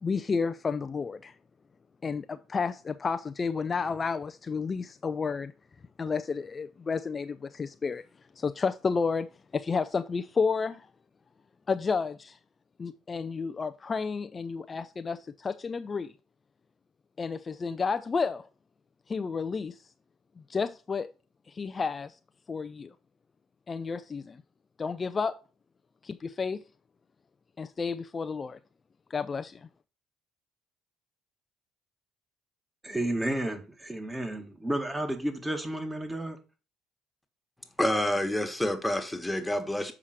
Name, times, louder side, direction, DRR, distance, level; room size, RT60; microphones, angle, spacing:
voice 1, 0.0-1.3 2.0-5.5 6.0-8.0 8.4-9.3 9.5-10.9 11.7-12.4 12.8-16.1 17.2-18.5 19.1-19.8 20.5-21.1 21.5-22.2 22.5-22.9 23.7-24.4 24.8-25.4 26.0-26.6 27.6-28.6 29.1-29.6, left 5 dB, 35° left, 0.4 m, -31 dB
voice 2, 32.8-36.4, right 1 dB, 15° right, 2.0 m, -32 dB
voice 3, 37.8-39.9, left 1 dB, 10° left, 1.5 m, -28 dB
7.2 x 4.9 x 4.4 m
hypercardioid pair, 65°, 0 cm